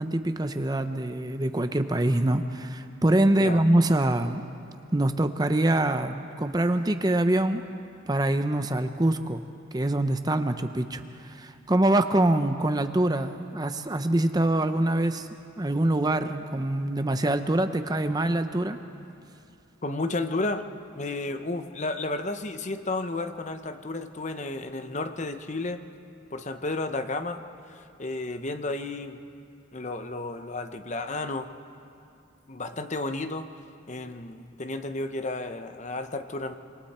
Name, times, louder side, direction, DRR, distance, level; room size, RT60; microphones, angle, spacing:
voice 1, 0.0-4.4 4.9-7.6 8.1-9.4 9.7-15.3 15.6-18.8, right 1 dB, 20° right, 8 dB, 0.6 m, -24 dB
voice 2, 19.8-20.7 21.0-25.8 26.3-29.2 29.7-31.5 32.5-33.5 33.9-36.6, left 2 dB, 35° left, 8 dB, 0.9 m, -32 dB
26.5 x 25.0 x 4.3 m, 2.6 s
head